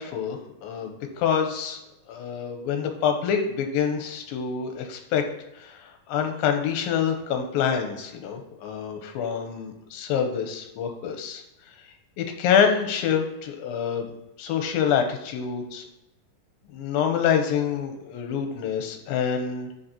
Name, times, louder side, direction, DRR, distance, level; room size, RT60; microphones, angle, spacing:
voice 1, 0.0-1.8 2.1-5.2 5.6-11.4 12.2-14.1 14.4-15.9 16.7-19.7, left 7 dB, 85° left, 4 dB, 2.7 m, -26 dB
9.5 x 4.2 x 2.9 m, 0.92 s
omnidirectional pair, 4.1 m